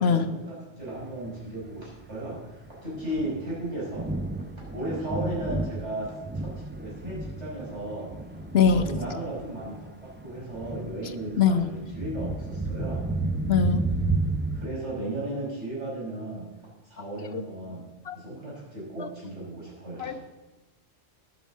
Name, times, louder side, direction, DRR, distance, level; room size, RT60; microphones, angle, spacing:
voice 1, 0.0-4.1 4.7-8.1 8.5-13.0 14.5-16.5 16.8-17.9 18.1-20.1, right 1 dB, 70° right, -6 dB, 5.8 m, -35 dB
Thunder, 1.0-14.7, right 2 dB, 15° right, 0.4 m, -32 dB
voice 2, 8.5-8.9 11.4-11.7 13.5-13.8 18.1-18.2 20.0-20.1, left 6 dB, 60° left, 10 dB, 0.9 m, -21 dB
11.0 x 9.0 x 7.3 m, 1.2 s
omnidirectional pair, 1.2 m